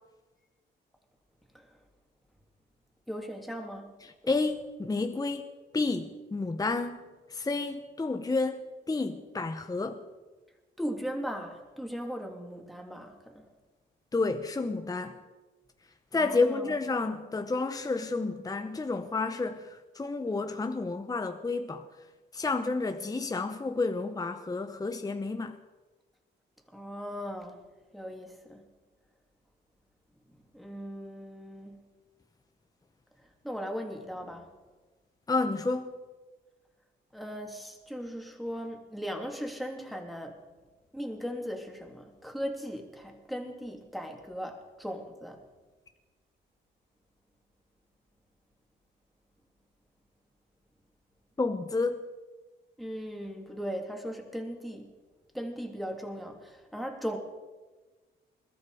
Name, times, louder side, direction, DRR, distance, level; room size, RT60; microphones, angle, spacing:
voice 1, 3.1-3.9 10.8-13.4 16.1-16.6 26.7-27.6 27.9-28.6 30.5-31.8 33.4-34.5 37.1-40.4 40.9-45.4 52.8-54.9 55.3-57.2, equal, ahead, 2 dB, 2.9 m, -38 dB
voice 2, 4.0-10.0 14.1-15.2 16.1-21.9 22.3-25.6 35.3-35.9 51.4-52.0, left 3 dB, 20° left, 7 dB, 1.0 m, -30 dB
21.5 x 13.0 x 5.0 m, 1.3 s
cardioid pair, 90°, 20 cm